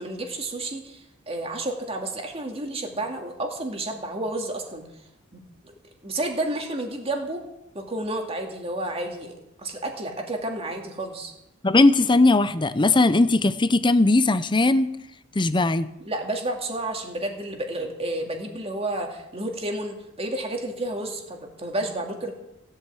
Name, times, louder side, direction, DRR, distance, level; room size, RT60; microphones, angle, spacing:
voice 1, 0.0-4.8 5.6-5.7 6.0-7.4 7.7-11.3 16.0-22.3, right 1 dB, 30° right, 2 dB, 2.4 m, -31 dB
voice 2, 11.6-14.9 15.4-15.9, left 2 dB, 20° left, 14 dB, 0.7 m, -19 dB
16.5 x 8.4 x 8.5 m, 0.87 s
head